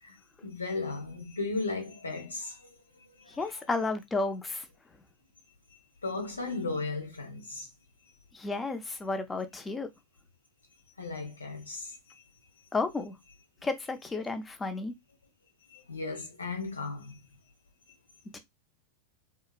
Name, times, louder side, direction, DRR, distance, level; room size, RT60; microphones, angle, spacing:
voice 1, 0.0-3.6 6.0-7.7 11.0-12.2 15.7-17.2, left 3 dB, 85° left, 0.7 m, -36 dB
voice 2, 3.3-4.7 8.3-9.9 12.7-13.2 13.6-14.9 18.3-18.4, left 3 dB, 15° left, 0.6 m, -32 dB
2.9 x 2.4 x 2.3 m
figure-of-eight pair, 90°, 0 cm